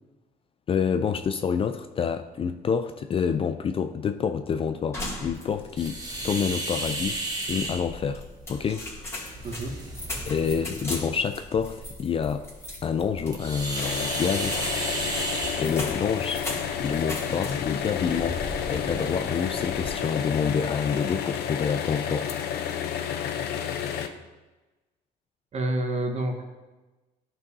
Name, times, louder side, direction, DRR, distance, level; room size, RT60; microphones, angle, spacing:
voice 1, 0.7-7.2 7.5-8.2 8.5-8.9 10.3-12.5 12.8-14.6 15.6-16.4 16.8-18.4 18.7-22.3, left 6 dB, 35° left, 9 dB, 0.4 m, -27 dB
sound 1, 4.9-5.8 6.1-6.2 6.7-7.6 8.1-17.8 18.2-18.7, left 1 dB, 15° left, 2.3 m, -39 dB
sound 2, 5.8-19.9, right 1 dB, 25° right, 1.5 m, -35 dB
voice 2, 9.4-9.8 25.5-26.4, right 1 dB, 40° right, 4 dB, 1.2 m, -28 dB
sound 3, 13.8-24.1, left 8 dB, 70° left, 0.6 m, -31 dB
11.5 x 5.5 x 2.7 m, 1.2 s
cardioid pair, 110°, 17 cm